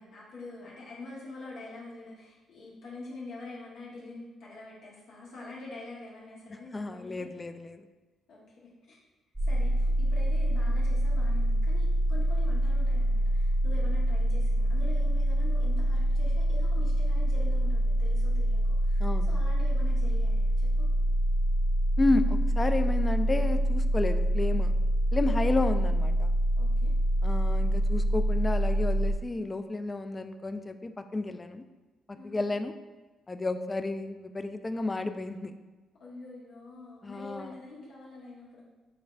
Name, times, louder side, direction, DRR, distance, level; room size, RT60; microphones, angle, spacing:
voice 1, 0.0-7.3 8.3-9.0 9.4-20.9 25.2-25.5 26.6-26.9 32.1-32.4 36.0-38.6, left 2 dB, 80° left, -6 dB, 1.0 m, -45 dB
voice 2, 6.7-7.8 19.0-19.3 22.0-24.7 25.1-26.3 27.2-31.6 32.1-32.7 33.3-35.6 37.0-37.5, left 2 dB, 20° left, 9 dB, 0.3 m, -31 dB
sound 1, 9.4-29.1, right 1 dB, ahead, 0.7 m, -26 dB
5.5 x 3.4 x 2.3 m, 1.2 s
cardioid pair, 90°, 0 cm